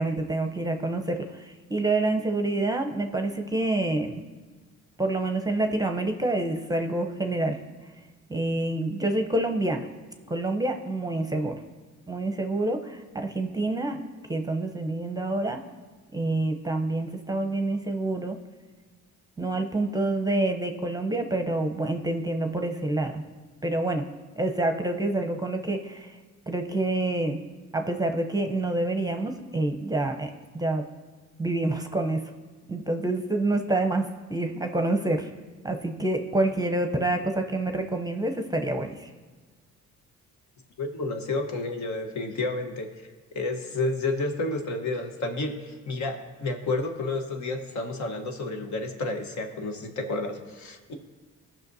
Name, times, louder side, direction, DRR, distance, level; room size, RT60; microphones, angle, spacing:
voice 1, 0.0-4.2 5.0-7.6 8.3-9.9 10.3-11.6 12.1-14.0 14.3-15.6 16.1-18.4 19.4-23.2 23.6-24.0 24.4-26.2 26.5-27.4 27.7-30.3 30.5-30.8 31.4-32.2 32.7-35.3 35.6-39.1, right 2 dB, 10° right, 5 dB, 0.7 m, -27 dB
voice 2, 40.8-42.9 43.3-50.9, left 2 dB, 65° left, 4 dB, 1.2 m, -30 dB
15.5 x 5.9 x 2.7 m, 1.4 s
cardioid pair, 90°, 30 cm